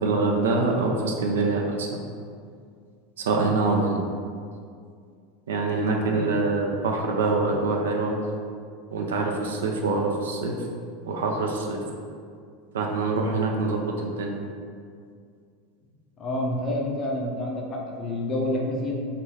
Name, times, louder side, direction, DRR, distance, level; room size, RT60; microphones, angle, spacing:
voice 1, 0.0-2.0 3.2-4.0 5.5-8.2 8.9-10.6 11.0-11.8 12.7-14.4, right 3 dB, 65° right, 1 dB, 0.3 m, -25 dB
voice 2, 16.2-18.9, left 1 dB, 35° left, -1 dB, 0.5 m, -28 dB
2.6 x 2.6 x 3.2 m, 2.2 s
figure-of-eight pair, 80°, 0 cm